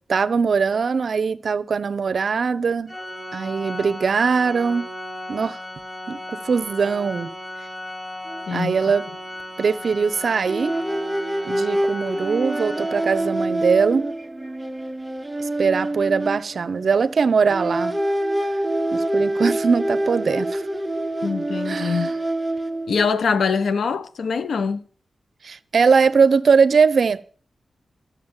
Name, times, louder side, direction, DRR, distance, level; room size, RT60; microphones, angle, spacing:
voice 1, 0.1-3.0 3.3-4.9 5.3-5.6 6.1-6.2 6.4-7.3 8.5-9.0 9.6-10.8 11.4-14.1 15.4-17.9 18.9-20.6 21.7-22.1 25.4-27.2, right 5 dB, 65° right, 0.8 m, -21 dB
Organ, 2.9-13.6, left 1 dB, 10° left, 2.4 m, -36 dB
sound 1, 8.3-8.4 8.7-8.9 10.5-17.1 17.5-23.1, right 1 dB, 10° right, 1.3 m, -26 dB
voice 2, 8.5-8.8 21.2-22.1 22.9-24.8, left 5 dB, 80° left, 1.0 m, -23 dB
13.5 x 7.2 x 9.0 m
wide cardioid pair, 105°, 0 cm